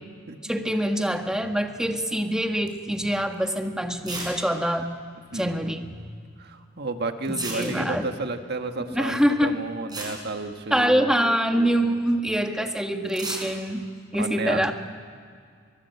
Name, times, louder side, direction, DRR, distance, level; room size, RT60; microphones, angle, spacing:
voice 1, 0.5-4.9 5.3-6.1 7.5-8.1 8.9-9.5 10.7-13.8 14.1-14.7, equal, 5° right, 4 dB, 1.6 m, -24 dB
sound 1, 2.7-3.0 3.3-3.4 4.0-4.4 4.6-4.7 4.9-5.0 7.3-8.1 9.5-9.6 9.9-11.1 13.1-13.5, right 3 dB, 20° right, 5.8 m, -35 dB
voice 2, 5.3-5.8 6.4-11.1 14.2-14.7, right 3 dB, 55° right, 6 dB, 1.6 m, -32 dB
24.0 x 21.0 x 8.2 m, 2.1 s
head